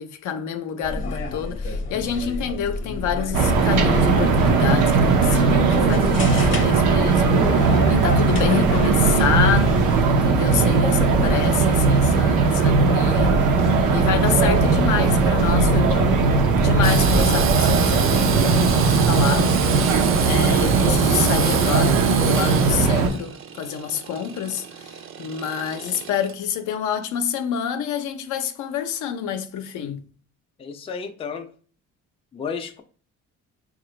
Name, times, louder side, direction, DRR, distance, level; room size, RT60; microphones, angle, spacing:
voice 1, 0.0-9.7 10.1-16.3 16.5-30.0, left 8 dB, 75° left, 0.5 m, -28 dB
sound 1, 0.8-10.0, left 3 dB, 45° left, 0.7 m, -29 dB
sound 2, 3.3-23.1, right 4 dB, 90° right, 0.6 m, -18 dB
Engine / Sawing, 16.8-26.3, right 7 dB, 45° right, 0.4 m, -28 dB
voice 2, 30.6-31.5 32.3-32.8, left 6 dB, 20° left, 0.3 m, -33 dB
3.8 x 2.4 x 3.1 m
cardioid pair, 90°, 30 cm